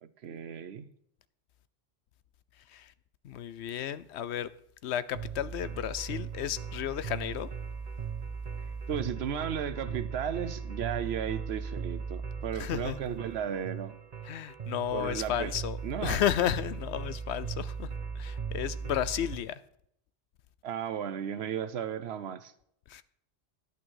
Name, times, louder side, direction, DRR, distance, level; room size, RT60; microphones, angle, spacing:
voice 1, 0.0-0.9 8.9-13.9 14.9-15.5 15.8-16.2 20.6-22.5, right 8 dB, 70° right, 0.9 m, -35 dB
voice 2, 3.2-4.5 4.8-7.5 12.5-13.0 14.2-19.6 22.9-23.0, left 10 dB, 75° left, 0.9 m, -33 dB
sound 1, 5.1-19.4, right 6 dB, 40° right, 0.8 m, -38 dB
11.0 x 8.8 x 4.6 m
omnidirectional pair, 1.2 m